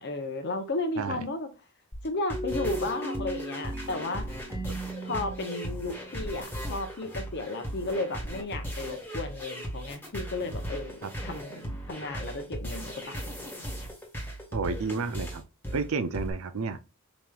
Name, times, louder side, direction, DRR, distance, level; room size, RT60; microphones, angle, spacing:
voice 1, 0.0-1.5 2.0-4.3 5.0-13.5, left 2 dB, 55° left, 0.8 m, -34 dB
sound 1, 1.9-16.3, equal, 10° left, 1.4 m, -37 dB
sound 2, 2.3-7.0, right 1 dB, 10° right, 0.9 m, -38 dB
voice 2, 14.5-15.4 15.7-16.8, right 4 dB, 70° right, 0.6 m, -31 dB
5.1 x 3.0 x 2.4 m
head